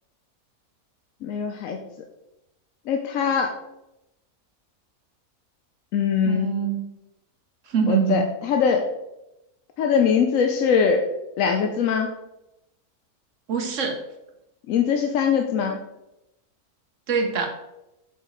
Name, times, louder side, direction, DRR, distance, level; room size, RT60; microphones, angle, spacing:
voice 1, 1.2-1.8 2.9-3.5 5.9-6.5 7.9-8.9 9.8-11.1 11.4-12.1 14.7-15.8, left 6 dB, 70° left, 4 dB, 0.9 m, -22 dB
voice 2, 6.2-6.8 7.7-8.2 13.5-14.0 17.1-17.5, right 6 dB, 60° right, 4 dB, 1.2 m, -23 dB
6.1 x 4.5 x 3.9 m, 0.90 s
omnidirectional pair, 1.6 m